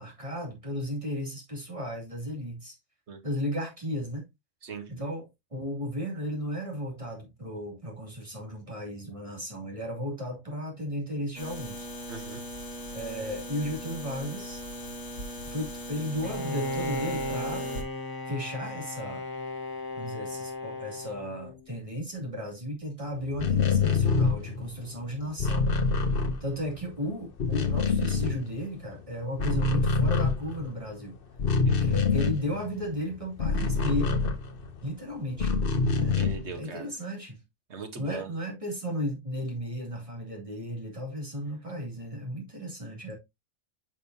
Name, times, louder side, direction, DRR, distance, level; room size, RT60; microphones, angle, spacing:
voice 1, 0.0-2.7 3.2-4.2 4.9-11.9 12.9-14.6 15.4-17.7 18.3-19.2 20.0-25.7 26.4-31.2 31.8-34.2 34.8-35.5 36.0-36.2 36.5-37.4 37.9-43.1, equal, 25° right, 3.0 m, -34 dB
sound 1, 11.4-17.8, equal, 90° left, 2.0 m, -39 dB
voice 2, 12.1-12.4 31.7-31.8 36.2-36.9 37.7-38.3, right 5 dB, 65° right, 1.5 m, -39 dB
Bowed string instrument, 16.2-21.8, left 1 dB, 20° left, 0.7 m, -35 dB
sound 2, 23.3-27.0 27.2-29.0 29.2-34.9 35.4-36.6, left 4 dB, 50° left, 1.1 m, -26 dB
8.4 x 5.4 x 2.8 m
omnidirectional pair, 1.3 m